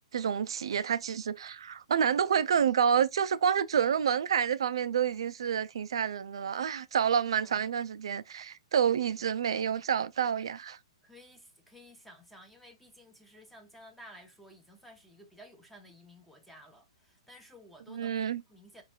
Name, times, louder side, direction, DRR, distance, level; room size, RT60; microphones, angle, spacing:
voice 1, 0.1-10.8 17.9-18.4, right 8 dB, 65° right, 0.4 m, -28 dB
voice 2, 11.0-18.2 18.5-18.8, equal, ahead, 0.9 m, -54 dB
4.9 x 2.5 x 2.3 m
figure-of-eight pair, 115°, 3 cm